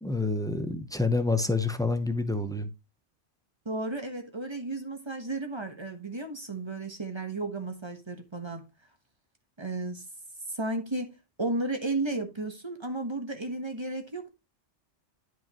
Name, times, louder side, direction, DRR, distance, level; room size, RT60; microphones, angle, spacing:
voice 1, 0.0-2.7, left 3 dB, 5° left, 0.7 m, -28 dB
voice 2, 3.6-8.7 9.6-10.0 10.5-14.3, right 2 dB, 25° right, 1.3 m, -33 dB
11.0 x 5.2 x 3.0 m
omnidirectional pair, 1.2 m